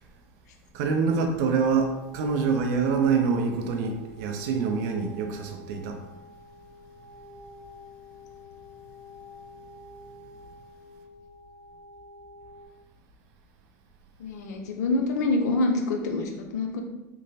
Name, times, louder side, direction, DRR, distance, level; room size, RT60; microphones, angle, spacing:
voice 1, 0.7-6.0, right 5 dB, 70° right, 5 dB, 0.5 m, -25 dB
sound 1, 1.6-12.7, left 2 dB, 45° left, 0.9 m, -48 dB
voice 2, 14.2-16.8, left 2 dB, 85° left, 3 dB, 0.5 m, -26 dB
3.0 x 2.2 x 2.7 m, 0.99 s
supercardioid pair, 100°, 9 cm